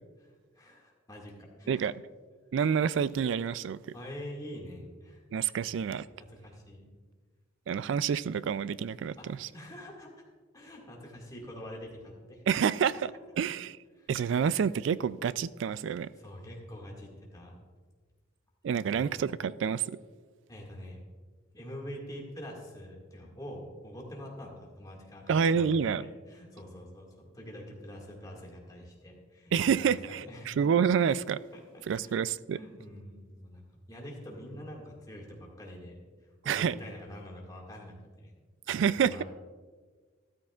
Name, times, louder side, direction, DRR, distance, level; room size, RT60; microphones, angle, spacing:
voice 1, 0.2-1.9 3.9-5.2 5.5-5.7 6.2-6.9 9.2-10.2 10.5-12.4 12.7-13.0 13.9-14.1 16.2-17.6 18.7-19.1 20.5-21.0 21.5-30.5 31.5-31.6 31.9-32.2 32.5-36.0 36.4-38.3 38.7-39.2, equal, 20° left, 1.9 m, -45 dB
voice 2, 2.5-3.8 5.3-6.1 7.7-9.5 12.5-12.9 13.4-13.8 14.1-16.1 18.6-20.0 25.3-26.1 29.5-31.4 31.9-32.6 36.4-36.8 38.7-39.2, right 7 dB, 65° right, 0.3 m, -28 dB
13.0 x 12.5 x 2.4 m
head